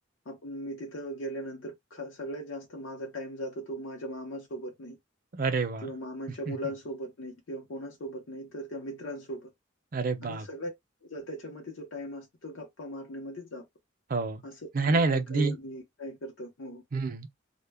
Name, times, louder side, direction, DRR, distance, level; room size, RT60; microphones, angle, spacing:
voice 1, 0.3-5.0 5.8-9.5 10.2-10.7 11.0-13.7 14.4-16.8, equal, 85° left, 0.7 m, -39 dB
voice 2, 5.3-5.9 6.5-6.6 9.9-10.5 14.1-14.4 14.7-15.5 16.9-17.3, right 3 dB, 45° right, 0.5 m, -27 dB
2.1 x 2.1 x 3.3 m
head